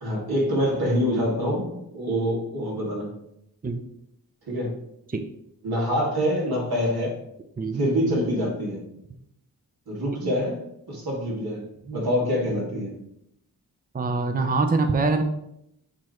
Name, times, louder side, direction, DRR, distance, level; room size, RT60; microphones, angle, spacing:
voice 1, 0.0-3.1 4.5-4.8 5.6-7.2 7.7-8.8 9.9-13.0, equal, 85° right, -3 dB, 2.2 m, -26 dB
voice 2, 13.9-15.2, right 3 dB, 25° right, 7 dB, 0.6 m, -23 dB
8.4 x 3.1 x 4.4 m, 0.79 s
wide cardioid pair, 80°, 36 cm